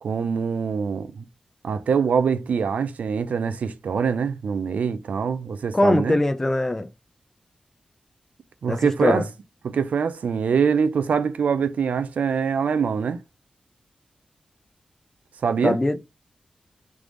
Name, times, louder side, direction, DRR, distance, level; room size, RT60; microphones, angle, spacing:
voice 1, 0.0-1.2 1.6-6.2 8.6-9.2 9.6-13.2 15.4-15.8, right 6 dB, 85° right, 0.5 m, -24 dB
voice 2, 5.7-6.9 8.7-9.3 15.6-16.0, left 1 dB, 15° left, 0.4 m, -21 dB
3.5 x 3.2 x 3.8 m
wide cardioid pair, 150°, 2 cm